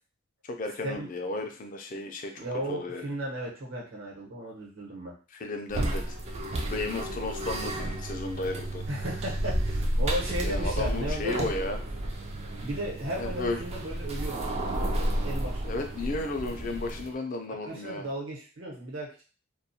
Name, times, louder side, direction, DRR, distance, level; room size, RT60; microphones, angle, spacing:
voice 1, 0.4-3.1 5.3-6.2 6.7-8.8 10.4-11.8 13.2-13.6 15.7-18.1, left 2 dB, 40° left, 4 dB, 0.4 m, -34 dB
voice 2, 2.4-5.1 8.9-11.3 12.6-14.4 15.2-15.8 17.5-19.2, right 1 dB, 75° right, -4 dB, 1.0 m, -35 dB
sound 1, 5.7-17.1, right 1 dB, 30° right, 0.3 m, -32 dB
2.2 x 2.1 x 2.7 m, 0.37 s
head